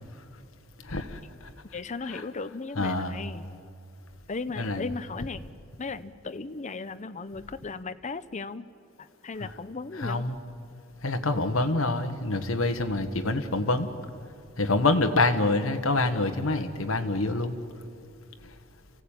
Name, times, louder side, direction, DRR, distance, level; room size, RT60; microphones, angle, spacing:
voice 1, 0.8-1.5 2.0-2.2 2.7-3.2 4.5-4.9 9.4-9.6 9.9-10.4 11.0-13.9 14.6-17.6 18.4-18.5, left 2 dB, 70° left, 6 dB, 1.3 m, -26 dB
voice 2, 1.7-3.5 4.3-5.4 5.8-8.7 9.0-10.3, left 3 dB, 35° left, 12 dB, 0.7 m, -36 dB
28.0 x 15.5 x 8.9 m, 2.5 s
head